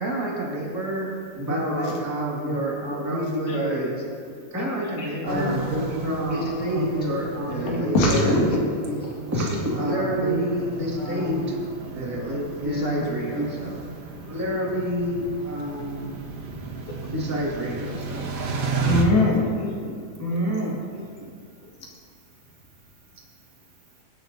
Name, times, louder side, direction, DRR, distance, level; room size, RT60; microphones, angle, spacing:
voice 1, 0.0-1.2 1.5-4.0 5.2-6.0 6.3-7.1 7.5-8.6 8.9-9.1 9.8-11.7 12.6-13.8, right 1 dB, 80° right, -5 dB, 0.7 m, -29 dB
voice 2, 1.4-2.6 3.0-3.9 4.2-5.6 6.0-8.4 9.3-10.4 10.8-11.5 11.9-13.0 13.3-13.5 14.3-16.2 17.1-18.3 20.2-21.3, equal, 10° right, -5 dB, 1.1 m, -29 dB
sound 1, 5.3-19.0, right 4 dB, 55° right, 2.0 m, -34 dB
voice 3, 7.6-8.5 12.1-12.2 18.9-20.0, left 2 dB, 85° left, -2 dB, 3.7 m, -22 dB
21.0 x 9.8 x 2.7 m, 2.2 s
omnidirectional pair, 4.1 m